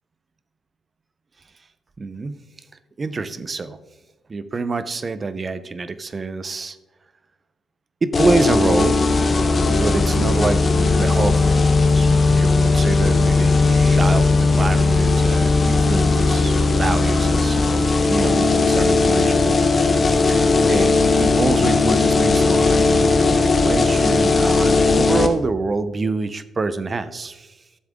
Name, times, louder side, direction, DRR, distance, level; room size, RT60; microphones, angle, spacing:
voice 1, 2.0-2.4 3.0-3.8 4.3-6.8 8.0-9.0 9.6-11.6 11.9-20.9 21.2-27.6, right 3 dB, 35° right, 14 dB, 0.7 m, -26 dB
sound 1, 8.1-25.3, left 3 dB, 40° left, 1.1 m, -17 dB
12.5 x 7.4 x 3.7 m, 1.1 s
cardioid pair, 75°, 0 cm